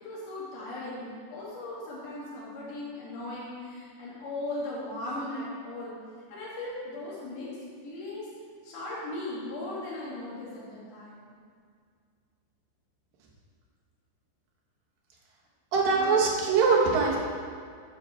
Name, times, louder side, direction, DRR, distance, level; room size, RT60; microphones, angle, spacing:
voice 1, 0.0-5.9 6.3-7.5 7.8-8.3 8.6-11.3 15.9-16.1, left 2 dB, 55° left, -7 dB, 3.3 m, -38 dB
voice 2, 15.7-17.2, right 4 dB, 70° right, -3 dB, 2.5 m, -22 dB
9.9 x 5.2 x 4.3 m, 2.1 s
omnidirectional pair, 4.8 m